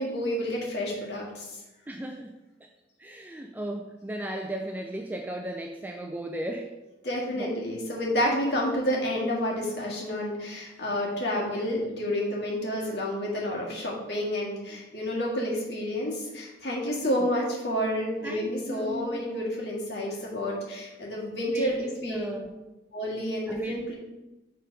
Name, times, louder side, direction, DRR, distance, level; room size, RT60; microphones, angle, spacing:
voice 1, 0.0-1.5 7.0-21.8 22.0-22.3 22.9-23.9, equal, 65° left, -3 dB, 1.9 m, -29 dB
voice 2, 1.9-2.3 3.0-6.7 7.4-7.5 18.2-19.2 21.5-22.5 23.5-23.9, right 1 dB, 10° right, 2 dB, 0.4 m, -35 dB
6.6 x 3.8 x 5.2 m, 1.0 s
head